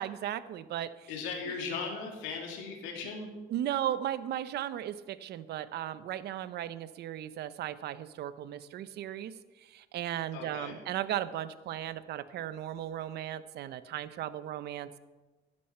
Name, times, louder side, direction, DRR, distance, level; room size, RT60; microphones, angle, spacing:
voice 1, 0.0-1.1 1.5-1.6 3.5-9.3 9.6-15.0, right 11 dB, 60° right, 14 dB, 0.8 m, -36 dB
voice 2, 1.1-3.3 10.3-10.7, left 5 dB, 90° left, 1 dB, 2.6 m, -38 dB
15.5 x 11.5 x 4.4 m, 1.2 s
cardioid pair, 120°, 19 cm